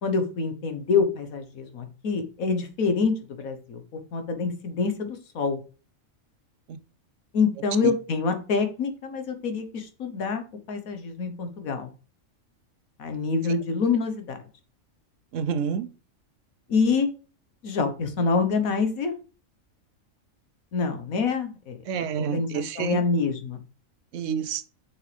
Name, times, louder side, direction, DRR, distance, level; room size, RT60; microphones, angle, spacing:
voice 1, 0.0-3.8 4.1-5.6 7.3-10.4 10.7-11.9 13.0-14.4 16.7-17.1 17.6-19.1 20.7-21.8 22.2-23.6, left 4 dB, 85° left, 1.6 m, -26 dB
voice 2, 15.3-15.9 21.9-23.0 24.1-24.7, right 7 dB, 70° right, 1.0 m, -28 dB
6.8 x 6.2 x 3.4 m
omnidirectional pair, 1.4 m